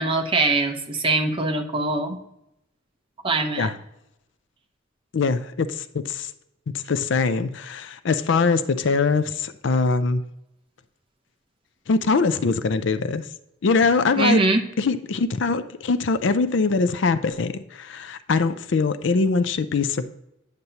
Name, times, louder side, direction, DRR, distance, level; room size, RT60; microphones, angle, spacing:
voice 1, 0.0-2.2 3.2-3.7 14.2-14.6, right 2 dB, 25° right, 4 dB, 0.8 m, -22 dB
voice 2, 5.1-6.3 6.9-10.2 11.9-13.2 13.6-14.4 14.8-20.1, left 4 dB, 65° left, 12 dB, 0.5 m, -22 dB
9.3 x 6.7 x 2.8 m, 0.83 s
head